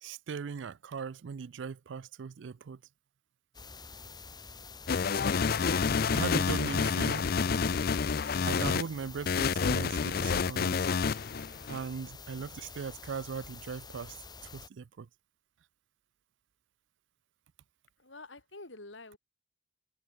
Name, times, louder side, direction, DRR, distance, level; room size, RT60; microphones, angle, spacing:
voice 1, 0.0-2.8 6.1-7.3 8.5-10.9 11.7-14.1 14.4-15.1, right 6 dB, 80° right, 0.4 m, -39 dB
sound 1, 3.5-14.7, left 4 dB, 20° left, 2.8 m, -48 dB
sound 2, 4.9-8.8 9.3-11.8, left 5 dB, 55° left, 0.5 m, -28 dB
voice 2, 18.0-19.2, left 2 dB, 85° left, 5.4 m, -49 dB
head